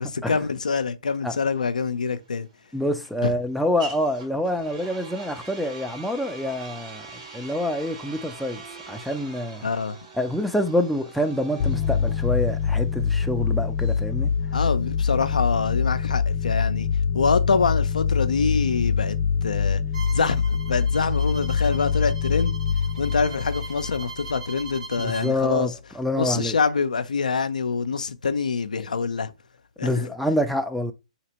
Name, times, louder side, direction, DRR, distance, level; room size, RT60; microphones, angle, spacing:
voice 1, 0.0-2.5 3.2-3.3 9.6-10.0 14.5-16.9 17.1-19.8 20.1-22.6 23.0-25.7 26.2-29.3 29.8-30.1, left 5 dB, 90° left, 0.4 m, -25 dB
sound 1, 1.4-15.2, right 3 dB, 65° right, 1.7 m, -43 dB
voice 2, 2.7-8.6 8.9-9.7 10.2-14.4 25.0-26.6 29.8-30.9, left 1 dB, ahead, 0.4 m, -26 dB
sound 2, 11.6-24.8, left 6 dB, 45° left, 0.6 m, -24 dB
Bowed string instrument, 19.9-25.3, right 4 dB, 80° right, 0.6 m, -41 dB
3.2 x 2.9 x 2.9 m
hypercardioid pair, 130°, 4 cm